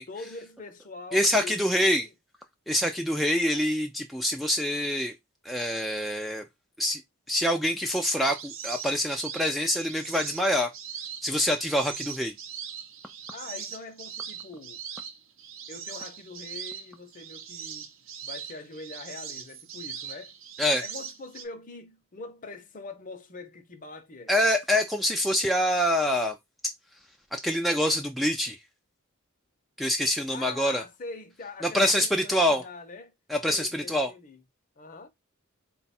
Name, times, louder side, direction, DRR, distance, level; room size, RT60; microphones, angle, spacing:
voice 1, 0.1-2.1 13.3-14.8 15.7-17.9 18.2-20.3 20.8-24.3 30.3-33.1 33.5-34.4 34.8-35.1, left 3 dB, 40° left, 0.7 m, -43 dB
voice 2, 1.1-2.1 2.7-5.1 5.4-6.4 6.8-7.0 7.3-10.7 11.2-12.3 20.6-20.8 24.3-26.4 27.3-28.6 29.8-30.8 31.6-32.6 33.3-34.1, left 1 dB, ahead, 0.3 m, -25 dB
sound 1, 8.1-21.4, right 7 dB, 70° right, 0.7 m, -40 dB
3.9 x 2.3 x 4.1 m
head